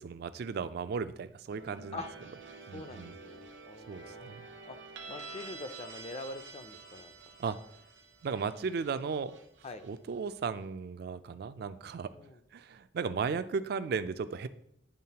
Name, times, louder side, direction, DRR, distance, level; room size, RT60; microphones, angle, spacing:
voice 1, 0.0-2.0 2.7-3.2 3.9-4.4 7.4-7.6 8.2-9.3 9.8-12.1 12.5-14.5, right 5 dB, 60° right, 13 dB, 0.3 m, -35 dB
sound 1, 1.5-10.4, right 4 dB, 80° right, 0.8 m, -49 dB
voice 2, 2.7-4.3 4.7-4.8 5.1-7.1 9.6-9.8 12.1-12.4, left 2 dB, 35° left, 10 dB, 0.4 m, -44 dB
10.0 x 3.6 x 2.8 m, 0.74 s
head